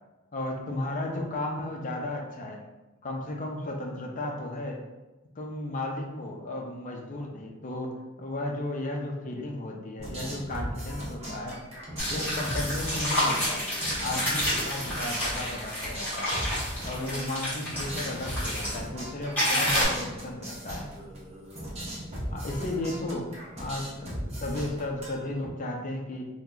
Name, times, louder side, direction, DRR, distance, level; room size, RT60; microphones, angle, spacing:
voice 1, 0.3-2.6 3.0-4.8 5.4-11.6 12.1-13.7 14.0-16.4 16.8-20.9 22.3-26.3, left 1 dB, 35° left, 1 dB, 0.5 m, -34 dB
sound 1, 10.0-25.5, equal, 30° right, 0.7 m, -38 dB
sound 2, 12.0-18.7 19.4-19.8, equal, 10° left, 1.4 m, -29 dB
2.8 x 2.1 x 3.7 m, 1.1 s
head